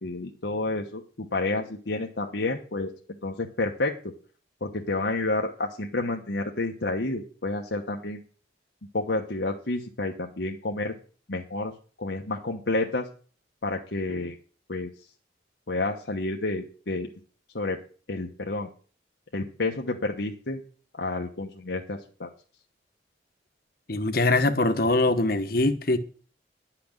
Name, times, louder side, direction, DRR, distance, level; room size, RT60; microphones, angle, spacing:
voice 1, 0.0-2.9 3.2-4.1 4.6-8.2 8.9-10.9 11.3-11.7 12.0-13.1 13.6-14.4 14.7-14.9 15.7-17.1 17.5-17.8 18.1-18.7 19.3-20.6 21.0-22.3, left 2 dB, 75° left, 1.2 m, -30 dB
voice 2, 23.9-26.0, left 2 dB, 55° left, 1.2 m, -23 dB
11.5 x 6.0 x 8.9 m
head